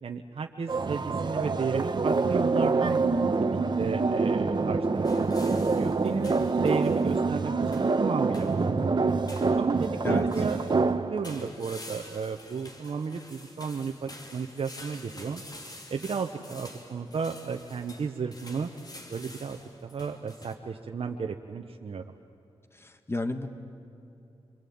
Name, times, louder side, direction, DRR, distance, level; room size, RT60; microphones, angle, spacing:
voice 1, 0.0-3.0 3.4-9.0 9.6-10.6 11.0-15.4 15.9-18.7 19.1-22.0, right 5 dB, 65° right, 4 dB, 0.9 m, -33 dB
sound 1, 0.7-11.5, right 4 dB, 45° right, 1.1 m, -26 dB
sound 2, 5.0-7.2 7.7-8.0 8.3-8.7 9.3-10.9 11.2-20.5, left 1 dB, 40° left, 3.2 m, -48 dB
voice 2, 22.7-23.5, left 2 dB, 25° left, 8 dB, 1.5 m, -31 dB
26.5 x 23.0 x 8.7 m, 2.7 s
cardioid pair, 70°, 10 cm